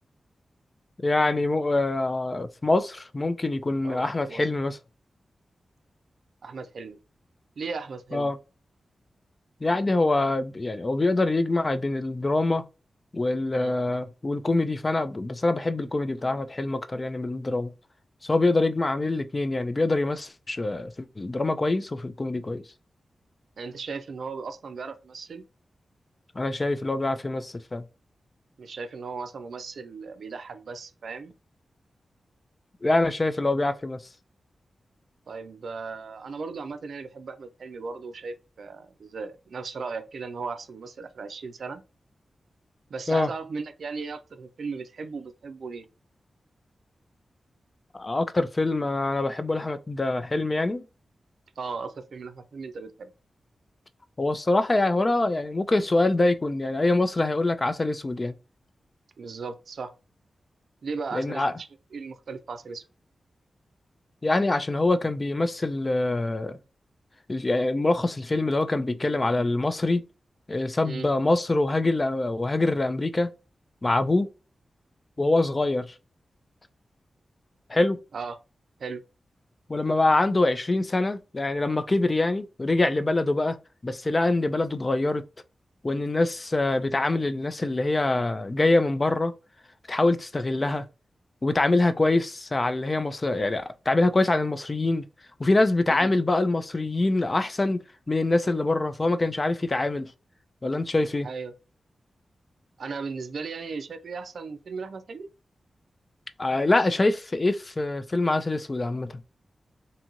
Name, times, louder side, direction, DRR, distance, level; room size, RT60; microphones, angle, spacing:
voice 1, 1.0-4.8 8.1-8.4 9.6-12.6 13.1-17.7 18.2-22.6 26.4-27.8 32.8-34.0 43.1-43.3 47.9-50.8 54.2-58.3 61.1-61.5 64.2-66.6 67.3-70.0 70.5-73.3 73.8-74.3 75.2-75.9 77.7-78.0 79.7-83.6 83.8-85.2 85.8-89.3 89.9-90.9 91.4-95.0 95.4-97.8 98.1-100.1 100.6-101.3 106.4-109.2, left 2 dB, 35° left, 0.3 m, -24 dB
voice 2, 3.8-4.5 6.4-7.0 7.6-8.3 13.5-13.8 23.6-25.4 28.6-31.3 35.3-41.8 42.9-45.9 51.6-53.1 59.2-59.9 60.8-62.8 70.8-71.1 78.1-78.4 78.8-79.0 95.9-96.2 101.2-101.5 102.8-105.3, right 4 dB, 80° right, 0.3 m, -37 dB
2.6 x 2.5 x 2.9 m
cardioid pair, 75°, 0 cm